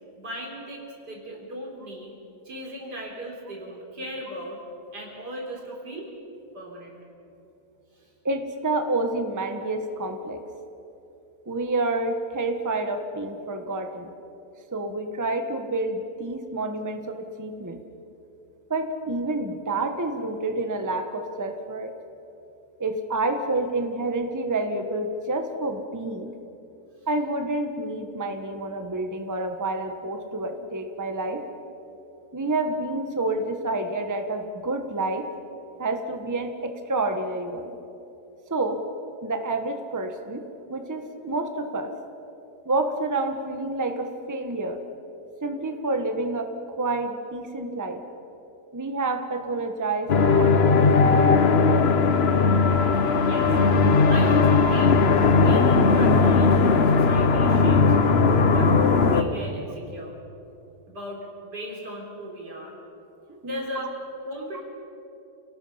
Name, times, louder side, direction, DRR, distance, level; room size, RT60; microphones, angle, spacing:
voice 1, 0.2-2.1 2.4-4.6 4.9-6.1 6.5-7.0 8.0-8.1 53.3-55.0 55.3-57.9 58.4-58.7 59.0-60.1 60.9-62.8 63.4-63.9 64.3-64.6, equal, 80° right, -1 dB, 4.4 m, -37 dB
voice 2, 8.2-10.4 11.5-14.1 14.7-17.8 18.7-21.9 22.8-26.3 27.1-31.4 32.3-35.3 35.8-37.7 38.5-38.8 39.2-40.4 40.7-41.9 42.6-44.8 45.4-46.5 46.8-48.0 48.7-50.8 63.3-63.6, right 2 dB, 15° right, 6 dB, 1.0 m, -28 dB
sound 1, 50.1-59.2, left 4 dB, 45° left, 1.0 m, -18 dB
28.5 x 18.5 x 5.7 m, 2.9 s
omnidirectional pair, 1.7 m